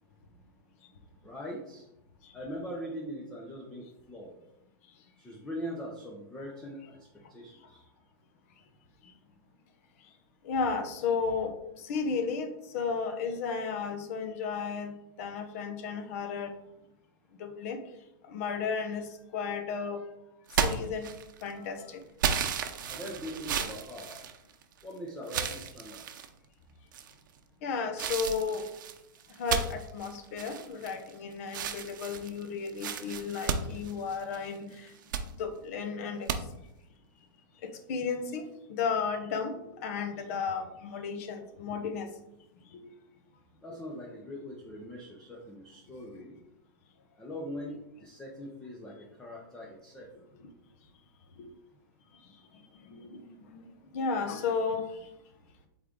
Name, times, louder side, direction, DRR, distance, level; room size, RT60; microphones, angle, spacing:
voice 1, 1.2-1.8 2.3-4.4 5.2-7.0 7.3-7.8 22.9-24.2 24.8-26.0 43.6-46.3 47.2-50.1, equal, 5° left, -2 dB, 0.6 m, -41 dB
voice 2, 10.4-16.6 17.4-17.8 18.3-20.0 20.6-21.1 21.4-22.0 27.6-28.7 29.4-34.9 35.4-36.4 37.6-42.1 42.7-42.9 46.1-46.2 50.4-50.5 51.4-51.5 52.7-53.6 53.9-55.1, left 5 dB, 40° left, 7 dB, 0.8 m, -34 dB
sound 1, 20.5-21.5 22.2-24.8 25.3-26.3 26.9-27.4 28.0-31.1 31.5-34.5 34.9-35.3 36.3-36.4, right 7 dB, 60° right, 0.7 m, -33 dB
8.1 x 3.7 x 3.7 m, 0.85 s
supercardioid pair, 175°, 11 cm